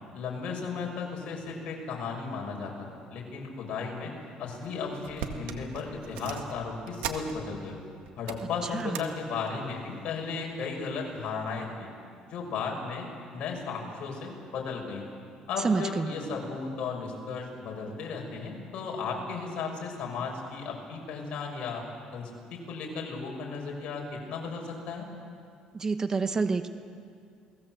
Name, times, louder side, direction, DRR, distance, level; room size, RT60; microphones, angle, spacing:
voice 1, 0.1-2.8 3.1-4.1 4.4-7.8 8.2-11.9 12.3-13.1 13.3-15.0 15.5-21.8 22.1-25.1, left 5 dB, 55° left, 0 dB, 6.8 m, -35 dB
sound 1, 4.6-4.7 5.0-7.7 8.1-9.1 9.5-9.8 10.6-11.0 11.5-11.6, right 8 dB, 90° right, 1.9 m, -40 dB
voice 2, 15.6-16.1 25.7-26.7, right 4 dB, 25° right, 9 dB, 1.1 m, -28 dB
29.5 x 19.5 x 7.9 m, 2.3 s
cardioid pair, 125°, 2 cm